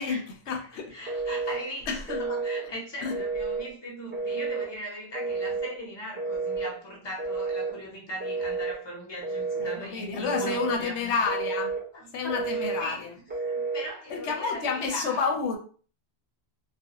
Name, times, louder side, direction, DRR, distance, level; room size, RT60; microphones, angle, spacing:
voice 1, 0.0-0.9 1.9-2.2 3.0-3.1 9.6-11.7 12.1-13.1 14.1-15.6, left 5 dB, 85° left, 3 dB, 0.9 m, -30 dB
voice 2, 0.9-11.3 11.9-13.1 13.4-15.2, equal, 25° left, -3 dB, 0.8 m, -39 dB
Telephone, 1.1-1.6 2.1-2.7 3.1-3.7 4.1-4.7 5.1-5.7 6.2-6.7 7.2-7.8 8.2-8.8 9.2-9.8 10.2-10.8 11.2-11.8 12.3-12.9 13.3-13.9, right 4 dB, 10° right, 0.6 m, -30 dB
2.4 x 2.2 x 2.8 m, 0.41 s
omnidirectional pair, 1.1 m